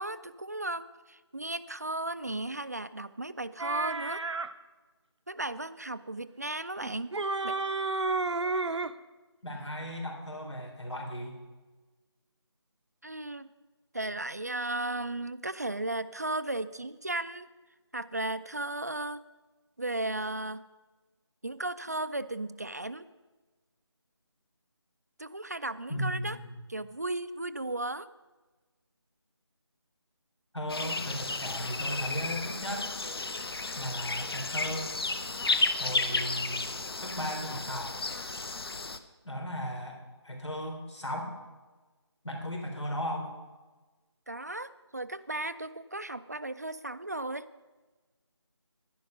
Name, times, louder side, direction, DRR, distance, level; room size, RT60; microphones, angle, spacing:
voice 1, 0.0-4.2 5.3-7.2 7.4-7.6 13.0-13.5 13.9-17.5 17.9-19.2 19.8-20.6 21.4-23.1 25.2-26.4 26.7-28.1 44.3-47.5, right 2 dB, 35° right, 13 dB, 0.3 m, -35 dB
sound 1, 3.6-4.5 6.8-9.0, right 3 dB, 85° right, 0.7 m, -31 dB
voice 2, 9.4-11.4 25.9-26.6 30.5-32.9 33.8-35.0 35.8-36.6 37.0-38.0 39.2-41.4 42.2-43.3, equal, 85° left, 2 dB, 4.0 m, -36 dB
sound 2, 30.7-39.0, left 3 dB, 60° left, 0.9 m, -33 dB
11.0 x 11.0 x 5.3 m, 1.2 s
figure-of-eight pair, 170°, 15 cm